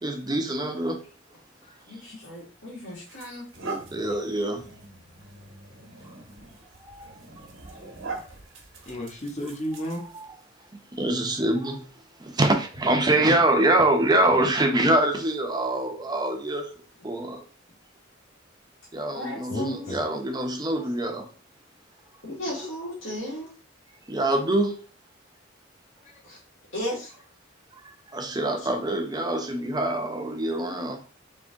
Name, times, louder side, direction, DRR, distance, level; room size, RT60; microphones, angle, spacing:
voice 1, 0.0-1.0 3.9-4.7 6.8-7.2 7.7-8.0 10.1-10.3 10.9-11.9 12.2-16.7 17.0-17.5 18.9-21.3 24.1-24.8 27.7-31.0, right 1 dB, 20° right, 0.7 m, -25 dB
voice 2, 1.9-3.5 19.1-19.9 22.2-23.5 26.2-26.4 26.7-27.1, left 1 dB, 75° left, 2.0 m, -35 dB
sound 1, 2.3-2.4 3.0-10.4, right 3 dB, 85° right, 1.1 m, -41 dB
voice 3, 8.9-10.0 19.5-20.1 22.5-22.6 26.0-26.1, equal, 35° left, 1.0 m, -32 dB
3.7 x 3.0 x 3.7 m
head